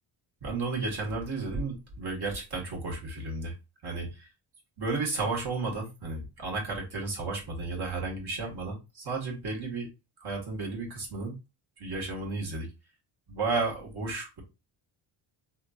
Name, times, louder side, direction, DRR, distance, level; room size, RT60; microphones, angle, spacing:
voice 1, 0.4-3.5 3.8-4.3 4.8-9.9 10.2-11.4 11.8-12.7 13.3-14.4, right 3 dB, 50° right, 0 dB, 1.7 m, -33 dB
3.6 x 2.7 x 2.4 m, 0.24 s
cardioid pair, 105°, 49 cm